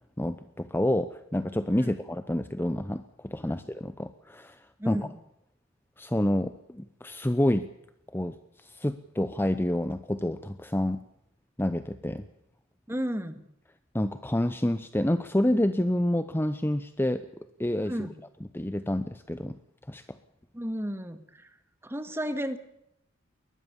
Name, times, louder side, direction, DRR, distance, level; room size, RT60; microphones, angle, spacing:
voice 1, 0.2-4.6 4.9-5.1 6.0-7.7 8.1-11.0 11.6-12.2 13.9-17.3 17.6-17.9 18.5-19.6 19.9-20.2, left 1 dB, 10° left, 11 dB, 0.8 m, -28 dB
voice 2, 4.8-5.2 12.9-13.5 17.9-18.2 20.5-21.5 21.8-22.6, equal, 10° right, 10 dB, 1.8 m, -33 dB
22.0 x 19.5 x 7.1 m, 0.78 s
head